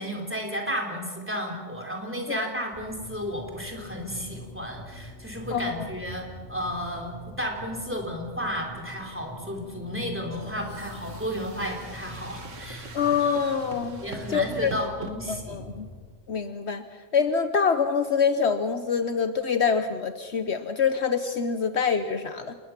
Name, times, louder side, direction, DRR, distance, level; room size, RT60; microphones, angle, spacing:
voice 1, 0.0-6.2 6.5-13.0 14.0-15.6, equal, 10° right, 2 dB, 3.6 m, -33 dB
sound 1, 2.7-16.0, equal, 15° left, 4.2 m, -44 dB
voice 2, 5.5-5.9 12.9-14.0 14.3-14.7 15.3-15.9 16.3-16.8 17.1-22.5, left 6 dB, 60° left, 9 dB, 1.1 m, -25 dB
sound 2, 10.3-15.1, right 3 dB, 70° right, 2.2 m, -43 dB
28.0 x 20.5 x 5.9 m, 1.5 s
omnidirectional pair, 1.3 m